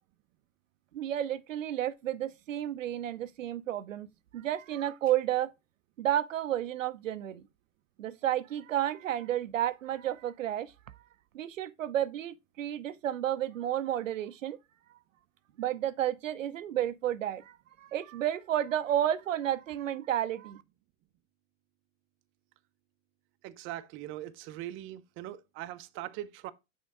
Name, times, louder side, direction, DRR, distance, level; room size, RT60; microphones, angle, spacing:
voice 1, 0.9-5.5 6.0-7.4 8.0-10.7 11.3-14.6 15.6-20.6, right 11 dB, 85° right, 0.6 m, -31 dB
voice 2, 23.4-26.5, right 14 dB, 35° right, 0.5 m, -41 dB
6.3 x 3.7 x 4.7 m
hypercardioid pair, 100°, 38 cm